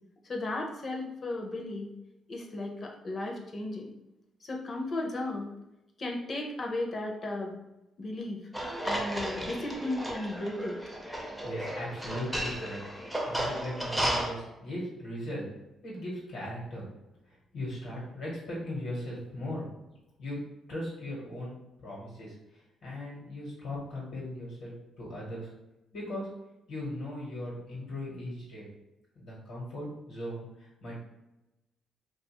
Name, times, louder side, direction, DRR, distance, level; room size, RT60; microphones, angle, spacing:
voice 1, 0.3-1.9 2.3-3.9 4.4-5.5 6.0-7.6 8.0-8.4 8.8-10.8, left 2 dB, 40° left, 1 dB, 0.6 m, -35 dB
sound 1, 8.5-14.3, right 1 dB, 5° right, 0.5 m, -34 dB
voice 2, 11.4-15.5 15.8-16.9 17.3-19.7 20.2-25.5 25.9-26.3 26.7-28.7 29.1-31.0, left 1 dB, 80° left, -6 dB, 1.0 m, -38 dB
2.7 x 2.3 x 2.9 m, 0.96 s
cardioid pair, 90°, 0 cm